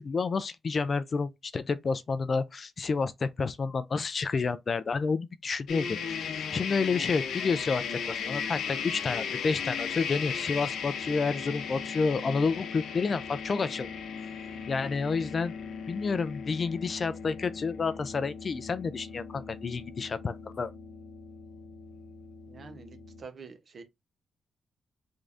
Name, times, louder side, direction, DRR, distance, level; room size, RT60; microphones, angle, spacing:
voice 1, 0.0-6.0 6.5-13.9 14.7-15.5 15.9-20.7, left 4 dB, 40° left, 0.3 m, -30 dB
sound 1, 5.7-23.2, left 6 dB, 80° left, 0.7 m, -37 dB
voice 2, 22.5-23.8, right 5 dB, 45° right, 0.9 m, -47 dB
3.6 x 3.3 x 2.5 m
cardioid pair, 125°, 0 cm